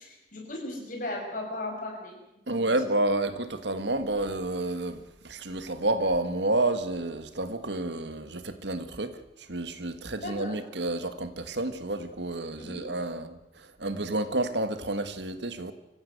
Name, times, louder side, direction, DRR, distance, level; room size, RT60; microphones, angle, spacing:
voice 1, 0.0-2.2 2.5-2.8 10.2-10.6 12.6-12.9, left 1 dB, 45° left, 6.7 m, -37 dB
voice 2, 2.5-9.1 9.5-13.4 13.8-15.7, right 2 dB, 75° right, 1.7 m, -30 dB
24.5 x 15.5 x 8.0 m
head